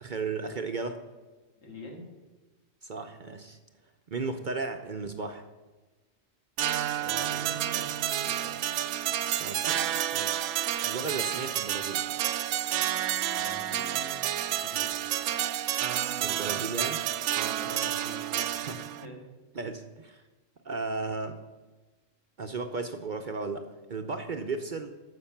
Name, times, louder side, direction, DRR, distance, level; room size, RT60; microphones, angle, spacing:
voice 1, 0.0-1.0 2.8-3.6 4.1-5.5 9.4-10.4 10.8-12.1 16.2-17.0 18.7-18.9 19.5-20.2 20.6-21.4 22.4-24.9, right 4 dB, 50° right, 6 dB, 0.7 m, -35 dB
voice 2, 1.6-2.1 4.2-4.4 7.0-8.6 13.4-15.0 17.5-19.2, left 1 dB, 80° left, 0 dB, 2.6 m, -46 dB
Audacity Plucker Loop, 6.6-19.1, right 11 dB, 80° right, 1.0 m, -30 dB
14.5 x 6.0 x 5.8 m, 1.2 s
omnidirectional pair, 1.3 m